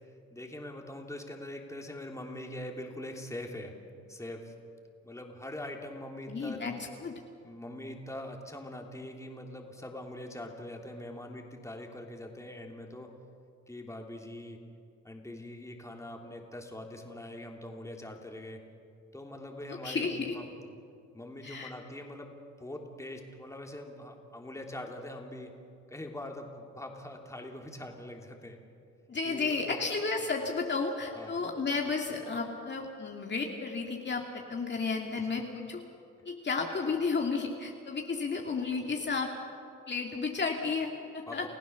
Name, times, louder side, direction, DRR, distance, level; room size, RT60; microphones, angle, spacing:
voice 1, 0.3-3.7 4.1-4.5 5.0-6.6 7.4-13.1 13.7-14.6 15.0-18.6 19.1-20.5 21.1-25.5 25.9-28.6 29.3-29.8 31.1-31.4 41.3-41.5, left 1 dB, 10° left, 2 dB, 3.1 m, -43 dB
voice 2, 6.3-6.7 7.0-7.1 19.7-20.3 21.4-21.7 29.1-35.8 36.3-39.3 39.9-41.5, left 4 dB, 35° left, 1 dB, 2.3 m, -32 dB
30.0 x 15.5 x 7.0 m, 2.4 s
cardioid pair, 90°, 30 cm